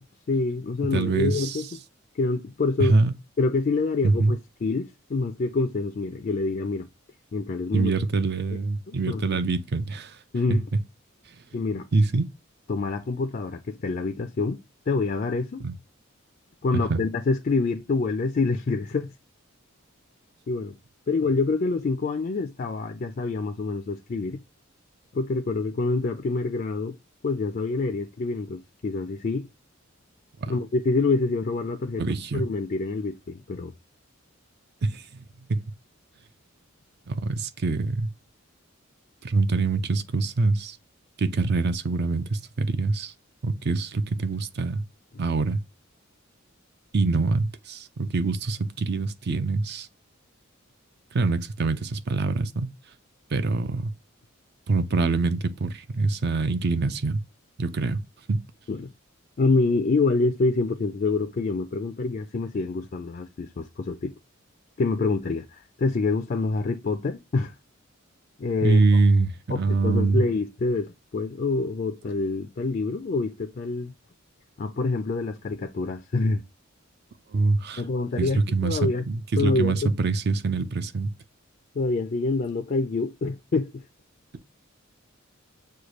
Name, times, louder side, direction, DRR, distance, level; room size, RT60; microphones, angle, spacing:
voice 1, 0.3-1.7 2.1-2.9 3.4-6.9 7.3-7.9 8.9-9.4 10.3-10.6 11.5-11.9 12.7-15.7 16.6-19.1 20.5-20.8 21.1-24.4 25.1-27.0 27.2-29.5 30.5-32.0 32.3-33.7 58.7-58.9 59.4-64.1 64.8-67.5 68.4-68.8 69.5-73.9 74.6-76.4 77.8-79.0 79.4-80.0 81.8-83.8, left 3 dB, 45° left, 0.4 m, -26 dB
voice 2, 0.9-1.6 2.8-3.1 4.0-4.3 7.7-10.2 10.5-10.6 11.9-12.3 15.6-15.7 16.7-17.0 30.4-30.6 32.0-32.4 34.8-35.6 37.1-38.1 39.2-40.8 41.2-43.1 43.4-44.8 45.2-45.6 46.9-49.9 51.1-52.7 53.3-53.9 54.7-57.2 57.6-58.0 58.3-58.4 68.6-70.2 77.3-77.8 78.2-81.1, right 3 dB, 50° right, 0.5 m, -24 dB
6.5 x 2.3 x 2.9 m
head